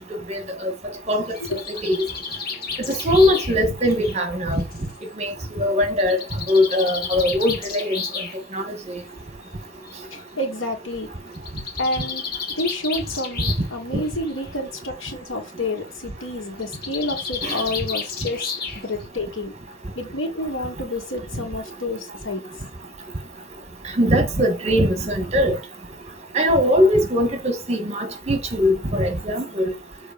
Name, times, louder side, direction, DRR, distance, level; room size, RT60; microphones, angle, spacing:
voice 1, 0.3-0.7 1.1-1.3 1.5-2.1 2.9-4.6 5.2-6.2 6.5-8.0 8.5-9.0 13.9-14.0 17.4-17.6 24.0-25.6 26.3-29.7, left 1 dB, 35° right, 1.9 m, -21 dB
Bird, 1.1-4.9 6.0-8.3 9.4-9.5 9.9-10.0 10.2-10.3 11.3-13.8 14.1-14.5 16.6-19.0, left 5 dB, 50° left, 2.3 m, -32 dB
voice 2, 10.1-11.1 11.8-12.2 12.6-18.5 18.8-19.5 20.0-22.4, left 1 dB, 85° left, 2.8 m, -29 dB
6.8 x 4.4 x 5.2 m
head